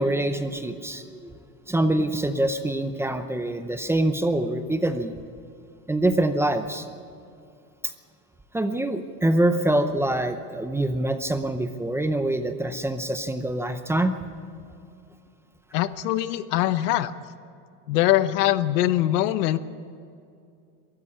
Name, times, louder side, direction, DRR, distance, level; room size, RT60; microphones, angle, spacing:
voice 1, 0.0-1.4 1.7-5.1 5.9-6.9 7.8-7.9 8.5-14.1, right 1 dB, 5° right, 8 dB, 0.7 m, -25 dB
voice 2, 15.7-17.1 17.9-19.6, left 14 dB, 85° left, 14 dB, 1.1 m, -22 dB
23.0 x 14.0 x 8.6 m, 2.5 s
supercardioid pair, 145°, 46 cm